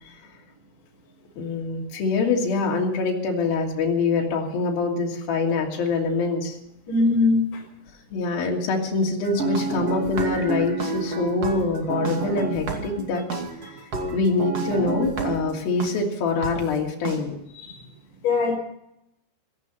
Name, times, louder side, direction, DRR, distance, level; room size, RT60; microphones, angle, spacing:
voice 1, 1.4-6.6 8.1-13.2 13.6-13.7 14.1-17.4, left 3 dB, 55° left, -1 dB, 4.3 m, -24 dB
voice 2, 6.9-7.6 17.5-17.9 18.2-18.6, left 3 dB, 40° left, -1 dB, 5.0 m, -21 dB
sound 1, 9.2-15.9 16.4-16.5 17.0-17.2, right 4 dB, 40° right, 2.8 m, -29 dB
16.5 x 15.5 x 5.6 m, 0.83 s
omnidirectional pair, 5.4 m